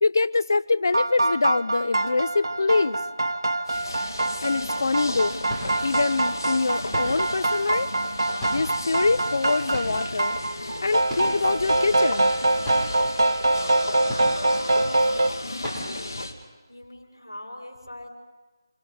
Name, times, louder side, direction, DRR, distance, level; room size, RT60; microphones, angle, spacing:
voice 1, 0.0-3.0 4.4-5.4 5.8-7.9 8.5-10.4 10.8-12.3, left 3 dB, 55° left, 14 dB, 0.7 m, -24 dB
sound 1, 0.9-15.3, right 2 dB, 75° right, 1.0 m, -25 dB
sound 2, 3.7-16.3, left 2 dB, 70° left, 2.4 m, -35 dB
sound 3, 5.5-5.9 6.9-7.3 8.4-8.9 9.7-10.1 11.1-11.5 11.8-11.9 12.3-12.4 12.6-13.0 14.1-14.6 15.0-15.2 15.6-16.0, equal, 5° right, 7.4 m, -35 dB
voice 2, 15.2-16.1 16.7-18.1, left 1 dB, 90° left, 1 dB, 6.7 m, -42 dB
29.5 x 26.5 x 4.1 m, 1.3 s
figure-of-eight pair, 160°, 2 cm